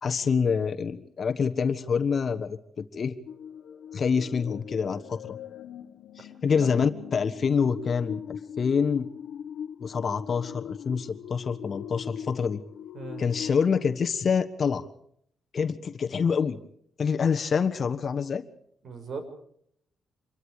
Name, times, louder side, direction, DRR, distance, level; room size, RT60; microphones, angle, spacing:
voice 1, 0.0-3.2 3.9-5.4 6.2-9.1 9.8-12.6 13.2-14.9 15.5-16.6 17.0-18.4, left 6 dB, 40° left, 8 dB, 1.4 m, -26 dB
sound 1, 3.3-13.9, left 8 dB, 80° left, 1.1 m, -41 dB
voice 2, 18.8-19.2, right 4 dB, 55° right, 8 dB, 6.0 m, -38 dB
26.5 x 22.5 x 4.9 m, 0.70 s
cardioid pair, 130°, 0 cm